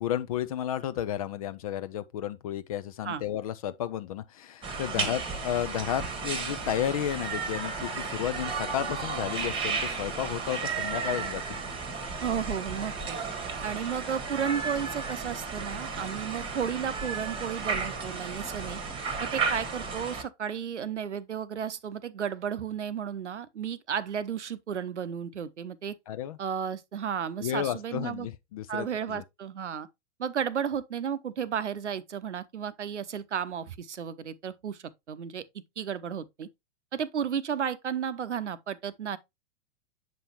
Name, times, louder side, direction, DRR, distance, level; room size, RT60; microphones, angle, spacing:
voice 1, 0.0-11.4 26.1-26.4 27.4-29.2, left 10 dB, 30° left, 0.4 m, -32 dB
sound 1, 4.6-20.2, right 4 dB, 15° right, 1.3 m, -33 dB
voice 2, 12.2-13.2 13.6-18.8 19.2-26.0 26.4-28.3 28.7-29.9 30.2-35.5 35.8-36.5 36.9-39.2, right 8 dB, 70° right, 0.8 m, -33 dB
7.6 x 5.3 x 2.9 m
figure-of-eight pair, 100°, 36 cm